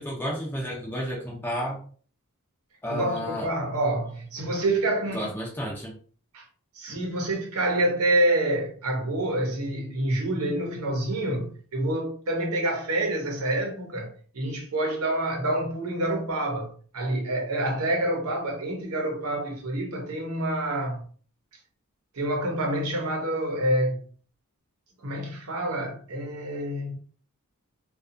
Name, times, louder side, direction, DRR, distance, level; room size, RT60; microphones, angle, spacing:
voice 1, 0.0-1.8 2.8-3.5 5.1-5.9, equal, 10° left, 0.6 m, -31 dB
voice 2, 2.9-5.3 6.3-6.5 6.7-21.0 22.1-24.0 25.0-27.0, right 1 dB, 70° right, 0.8 m, -27 dB
2.6 x 2.3 x 2.5 m
head